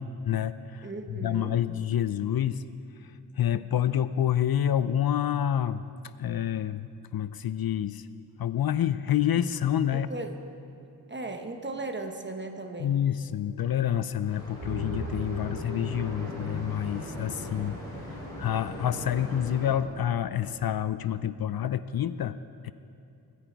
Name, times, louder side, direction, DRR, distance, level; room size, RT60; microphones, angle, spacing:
voice 1, 0.0-0.9 1.2-2.6 3.4-5.8 6.2-6.9 7.1-8.1 8.4-10.1 12.8-17.8 18.1-22.4 22.6-22.7, left 10 dB, 65° left, 14 dB, 0.5 m, -28 dB
voice 2, 0.8-1.6 9.9-10.4 11.1-13.0, right 2 dB, 30° right, 5 dB, 1.1 m, -37 dB
sound 1, 14.2-19.7, equal, 10° left, 4.5 m, -40 dB
sound 2, 14.6-20.7, right 1 dB, 45° right, 2.1 m, -42 dB
24.0 x 10.5 x 4.6 m, 2.8 s
wide cardioid pair, 120°, 39 cm